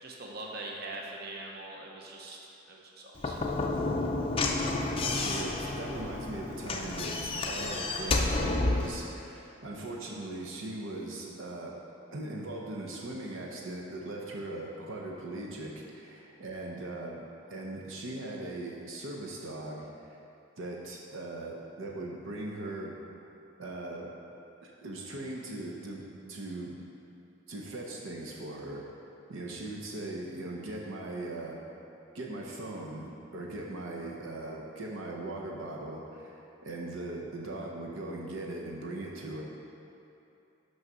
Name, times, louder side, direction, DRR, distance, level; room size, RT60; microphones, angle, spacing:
voice 1, 0.0-2.4 2.7-3.5, right 2 dB, 50° right, -2 dB, 0.9 m, -42 dB
Slam / Knock, 3.2-9.0, left 2 dB, 25° left, 0.5 m, -30 dB
voice 2, 5.0-11.8 12.1-20.2 20.6-23.0 23.6-24.1 24.6-26.0 26.3-26.7 27.5-28.8 29.3-31.6 32.1-39.4, right 2 dB, 75° right, -2 dB, 0.8 m, -39 dB
6.3 x 5.6 x 6.1 m, 2.8 s
head